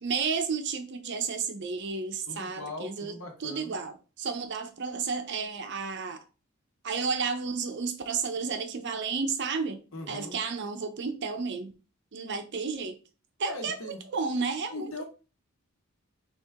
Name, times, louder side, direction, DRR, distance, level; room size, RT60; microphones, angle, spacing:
voice 1, 0.0-6.2 6.8-9.8 10.1-11.7 12.1-13.0 13.4-15.0, right 5 dB, 55° right, 0.7 m, -32 dB
voice 2, 2.3-3.7 9.9-10.4 13.4-14.0 14.7-15.0, left 1 dB, 70° left, 1.4 m, -40 dB
4.5 x 3.1 x 3.6 m
head